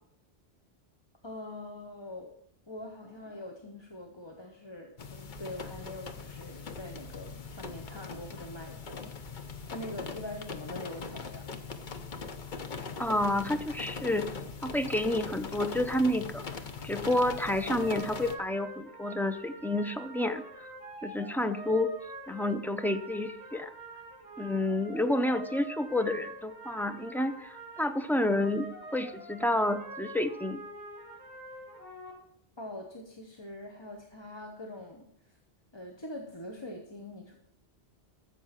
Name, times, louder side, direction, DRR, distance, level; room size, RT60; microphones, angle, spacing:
voice 1, 1.2-2.3 2.7-11.6 32.6-35.4 35.7-37.3, left 1 dB, 25° left, 2 dB, 1.0 m, -44 dB
sound 1, 5.0-18.4, left 5 dB, 50° left, 1.0 m, -41 dB
voice 2, 13.0-14.3 14.6-16.4 16.8-20.4 21.0-21.9 22.3-23.7 24.4-30.6, left 1 dB, 5° left, 9 dB, 0.3 m, -29 dB
sound 2, 17.0-32.1, right 2 dB, 90° left, 4.9 m, -46 dB
14.0 x 7.1 x 5.8 m, 0.71 s
omnidirectional pair, 1.1 m